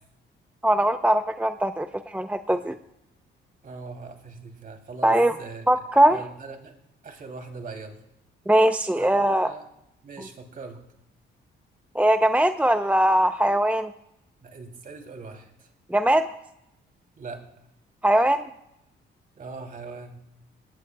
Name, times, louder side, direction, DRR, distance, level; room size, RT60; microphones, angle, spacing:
voice 1, 0.6-2.8 5.0-5.3 5.7-6.2 8.5-9.5 12.0-13.9 15.9-16.3 18.0-18.4, right 1 dB, 5° right, 9 dB, 0.5 m, -21 dB
voice 2, 3.6-5.7 6.1-6.8 7.0-8.0 9.0-9.6 10.0-10.8 14.4-15.7 17.2-17.4 19.4-20.2, right 4 dB, 45° right, 3 dB, 2.8 m, -40 dB
19.5 x 17.0 x 2.2 m, 0.83 s
cardioid pair, 90°, 20 cm